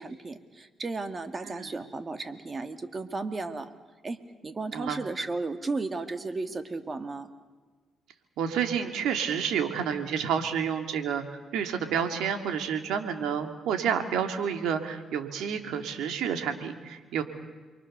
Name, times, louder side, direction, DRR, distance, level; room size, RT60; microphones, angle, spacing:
voice 1, 0.0-3.7 4.0-7.3, right 3 dB, 30° right, 8 dB, 2.2 m, -34 dB
voice 2, 8.4-17.2, right 7 dB, 85° right, 6 dB, 2.8 m, -29 dB
29.0 x 24.0 x 6.8 m, 1.4 s
cardioid pair, 90°, 0 cm